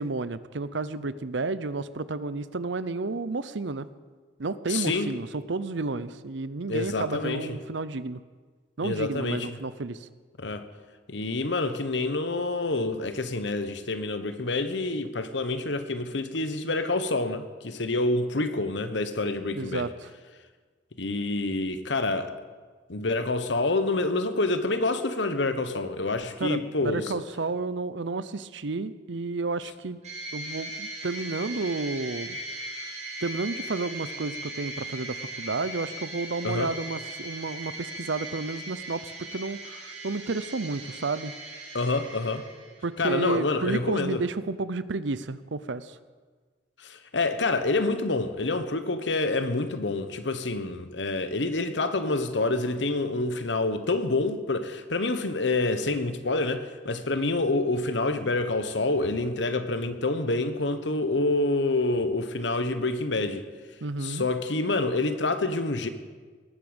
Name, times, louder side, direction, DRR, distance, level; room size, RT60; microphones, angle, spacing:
voice 1, 0.0-3.9 4.4-8.2 8.8-10.1 19.5-20.1 26.4-30.0 30.3-32.4 33.2-41.4 42.8-46.0 63.8-64.2, right 3 dB, 80° right, 0.7 m, -31 dB
voice 2, 4.7-5.1 6.7-7.6 8.8-9.6 10.4-10.6 11.1-19.9 21.0-22.3 22.9-27.2 36.4-36.7 41.7-42.5 43.0-44.2 46.8-63.5 64.0-65.9, left 2 dB, 75° left, 1.2 m, -27 dB
sound 1, 30.0-42.9, right 1 dB, 40° right, 3.2 m, -39 dB
19.0 x 8.6 x 8.0 m
head